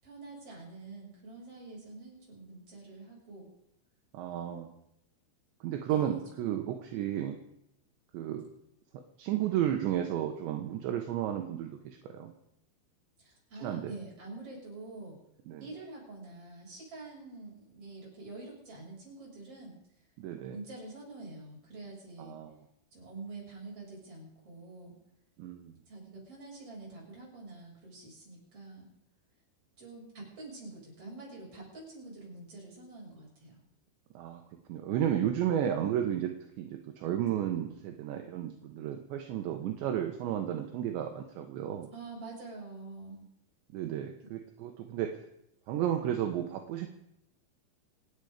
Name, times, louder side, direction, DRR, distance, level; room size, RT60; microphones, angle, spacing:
voice 1, 0.0-3.5 5.9-6.2 13.2-15.1 15.6-19.8 20.5-22.4 22.9-25.0 25.9-28.9 29.8-33.6 41.9-43.3, right 3 dB, 30° right, -3 dB, 8.0 m, -46 dB
voice 2, 4.1-4.7 5.6-7.4 8.1-8.5 9.2-12.3 13.6-13.9 15.5-15.7 20.2-20.6 22.2-22.5 25.4-25.8 34.1-34.4 34.7-36.3 36.6-41.9 43.7-45.2 45.7-46.9, right 10 dB, 75° right, 4 dB, 3.3 m, -33 dB
28.0 x 9.5 x 5.1 m, 0.80 s
omnidirectional pair, 5.6 m